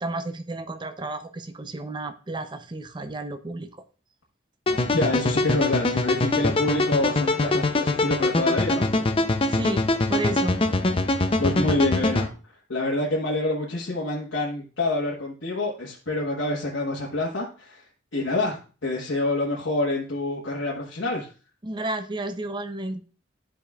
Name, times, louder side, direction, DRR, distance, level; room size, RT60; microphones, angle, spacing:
voice 1, 0.0-3.8 9.5-10.6 21.6-23.0, right 2 dB, 25° right, 8 dB, 0.5 m, -32 dB
sound 1, 4.7-12.3, left 2 dB, 30° left, 0.5 m, -23 dB
voice 2, 4.9-8.9 11.4-12.3 12.7-17.8 18.1-21.3, left 2 dB, 80° left, -4 dB, 1.3 m, -27 dB
12.5 x 5.0 x 2.3 m, 0.36 s
head